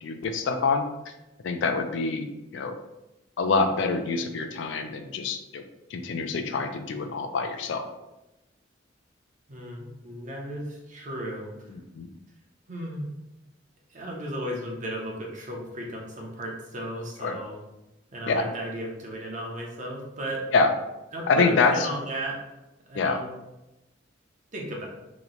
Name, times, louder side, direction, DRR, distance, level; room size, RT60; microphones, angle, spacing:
voice 1, 0.0-1.1 1.4-2.7 3.4-5.6 5.9-7.9 11.7-12.1 17.2-17.4 18.3-18.5 20.5-20.7 21.3-21.9 22.9-23.2, left 4 dB, 70° left, 7 dB, 0.3 m, -26 dB
voice 2, 9.5-11.5 12.7-13.1 13.9-17.6 18.1-20.5 21.1-22.4 22.9-23.3 24.5-24.9, right 1 dB, 40° right, -1 dB, 0.7 m, -35 dB
2.9 x 2.1 x 3.7 m, 0.95 s
head